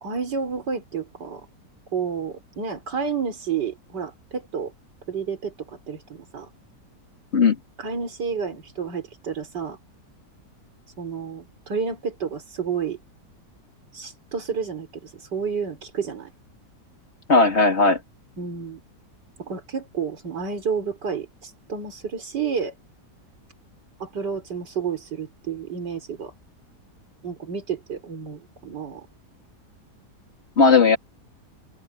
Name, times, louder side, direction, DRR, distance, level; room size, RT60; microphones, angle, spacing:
voice 1, 0.0-1.5 1.9-4.7 5.1-6.5 7.8-9.8 11.0-13.0 13.9-16.3 18.4-18.8 19.4-22.7 24.0-26.3 27.2-29.1, right 6 dB, 85° right, 4.3 m, -30 dB
voice 2, 17.3-18.0 30.6-31.0, left 4 dB, 40° left, 2.6 m, -16 dB
omnidirectional pair, 1.8 m